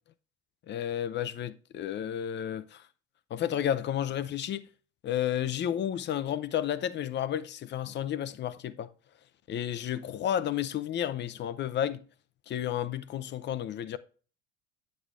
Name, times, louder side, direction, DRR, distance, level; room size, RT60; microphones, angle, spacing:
voice 1, 0.7-2.8 3.3-4.6 5.0-8.9 9.5-12.0 12.5-14.0, left 10 dB, 35° left, 0.5 m, -32 dB
8.3 x 7.7 x 2.4 m
supercardioid pair, 105°, 31 cm